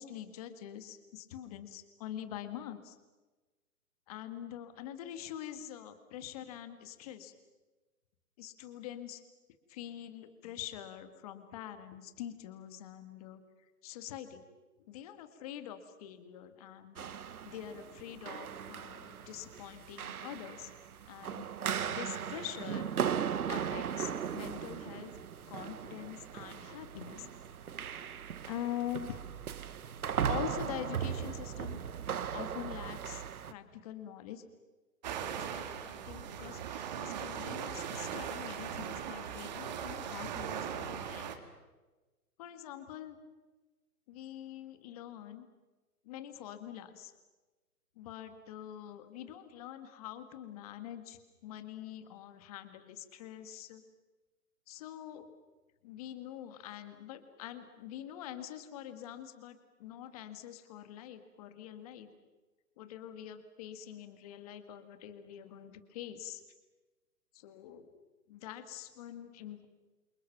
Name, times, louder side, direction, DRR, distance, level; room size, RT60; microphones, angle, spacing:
voice 1, 0.0-3.0 4.1-7.3 8.4-9.2 9.7-13.4 13.8-14.4 14.9-17.1 17.4-20.7 21.1-21.5 21.9-22.9 23.5-25.1 25.5-27.3 28.4-29.2 30.3-31.8 32.3-34.4 35.2-41.5 42.4-43.2 44.1-45.5 46.1-47.1 48.0-53.8 54.7-55.3 55.8-62.1 62.8-66.4 67.3-67.9 68.3-69.7, left 11 dB, 25° left, 9 dB, 1.8 m, -45 dB
sound 1, 17.0-33.5, right 8 dB, 65° right, 1.5 m, -38 dB
sound 2, 35.0-41.4, right 8 dB, 30° right, 1.9 m, -39 dB
28.5 x 28.0 x 6.0 m, 1.2 s
hypercardioid pair, 165°, 46 cm